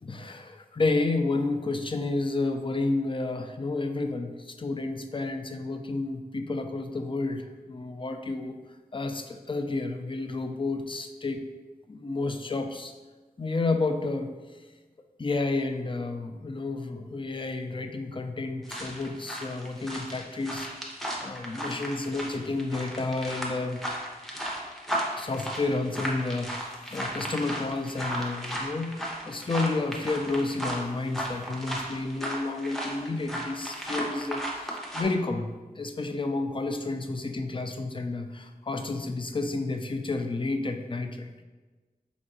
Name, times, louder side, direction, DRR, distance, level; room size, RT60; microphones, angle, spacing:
voice 1, 0.0-8.6 8.9-11.5 11.9-12.9 13.4-14.3 15.2-20.7 21.2-23.8 25.2-41.4, left 3 dB, 30° left, 6 dB, 0.4 m, -31 dB
sound 1, 18.6-35.0, equal, ahead, 0.9 m, -35 dB
4.7 x 2.5 x 3.8 m, 1.3 s
wide cardioid pair, 50°, 16 cm